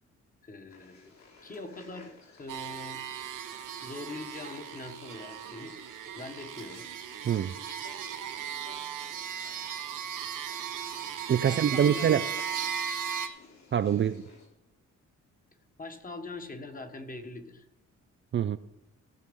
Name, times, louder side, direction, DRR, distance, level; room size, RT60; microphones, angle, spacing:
voice 1, 0.4-1.1 1.4-3.0 3.8-5.7 6.1-6.9 11.4-12.1 15.8-17.7, left 2 dB, 25° left, 1.6 m, -42 dB
sound 1, 0.7-14.5, left 4 dB, 60° left, 3.5 m, -56 dB
sound 2, 2.5-13.3, right 8 dB, 80° right, 1.2 m, -37 dB
voice 2, 7.2-7.6 11.3-12.2 13.7-14.2 18.3-18.6, right 9 dB, 40° right, 0.4 m, -25 dB
16.5 x 6.5 x 5.4 m
cardioid pair, 105°, 31 cm